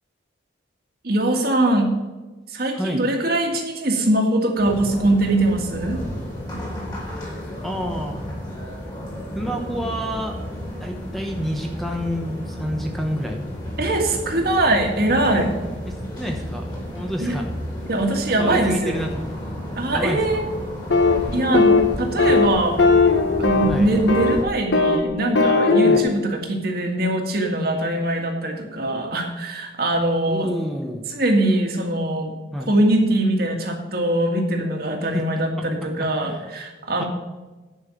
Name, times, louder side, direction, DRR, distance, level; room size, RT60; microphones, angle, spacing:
voice 1, 1.0-1.9 2.5-6.0 13.8-15.6 17.2-17.3 17.9-19.0 19.7-20.4 21.3-22.8 23.4-30.5 31.1-32.3 32.7-37.1, right 1 dB, 55° right, 2 dB, 1.9 m, -22 dB
sound 1, 4.6-24.4, equal, 25° left, 3.2 m, -32 dB
voice 2, 7.6-8.2 9.3-10.4 10.8-13.4 15.9-17.4 18.4-19.3 19.9-20.4 23.7-23.9 25.8-26.1 30.3-31.1 32.5-32.7 35.1-35.2 35.6-35.7 36.2-36.4 37.0-37.1, equal, ahead, 1 dB, 1.0 m, -29 dB
sound 2, 20.9-21.2 21.5-21.9 22.2-22.5 22.8-23.8 24.1-24.4 24.7-25.0 25.3-26.0, left 3 dB, 75° left, 1.4 m, -17 dB
10.5 x 5.6 x 7.0 m, 1.2 s
head